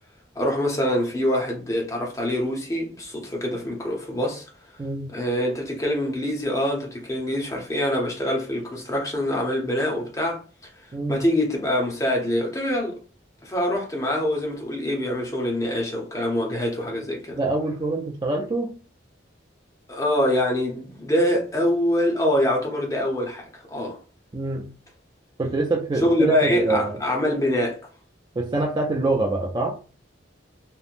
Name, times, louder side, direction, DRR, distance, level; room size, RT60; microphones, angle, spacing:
voice 1, 0.4-4.4 5.1-10.4 11.1-13.0 13.4-17.4 19.9-24.0 26.0-27.8, left 1 dB, 15° left, 0.6 m, -24 dB
voice 2, 10.9-11.2 17.3-18.7 24.3-24.7 25.4-27.0 28.4-29.8, right 2 dB, 25° right, 0.3 m, -25 dB
3.0 x 2.0 x 2.5 m
head